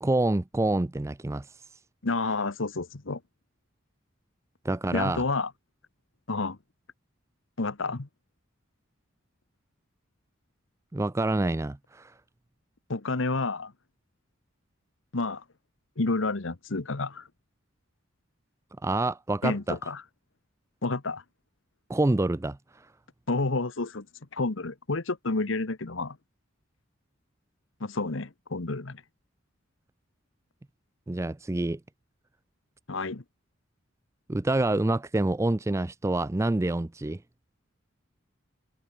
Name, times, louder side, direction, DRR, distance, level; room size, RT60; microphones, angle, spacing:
voice 1, 0.0-1.5 4.6-5.2 10.9-12.1 18.8-19.8 21.9-22.6 31.1-31.8 34.3-37.2, right 2 dB, 15° right, 0.4 m, -27 dB
voice 2, 2.0-3.2 4.9-5.5 6.3-6.6 7.6-8.1 12.9-13.7 15.1-15.4 16.0-17.3 19.4-20.0 20.8-21.2 23.3-24.1 24.3-26.2 27.8-29.0 32.9-33.2, left 3 dB, 70° left, 1.2 m, -30 dB
head